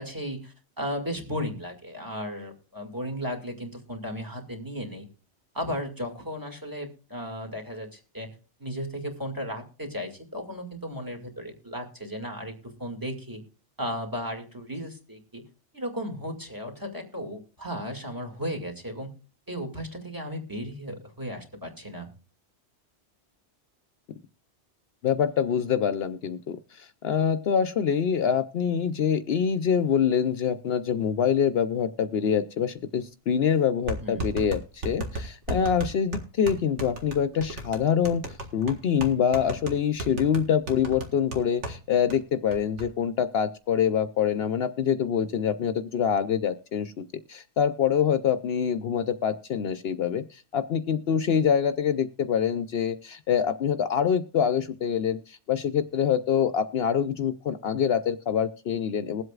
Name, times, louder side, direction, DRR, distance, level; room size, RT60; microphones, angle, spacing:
voice 1, 0.0-5.1 5.5-8.3 8.6-12.5 12.8-13.4 13.8-15.4 15.7-19.1 19.5-22.1 34.0-34.3, equal, 15° right, 2 dB, 2.3 m, -35 dB
voice 2, 25.0-38.2 38.5-59.2, left 8 dB, 65° left, 11 dB, 0.8 m, -25 dB
sound 1, 32.9-33.0 33.9-41.8 42.1-42.2 42.5-42.9, right 1 dB, 90° right, 2.0 m, -35 dB
21.5 x 7.9 x 2.4 m, 0.37 s
omnidirectional pair, 1.2 m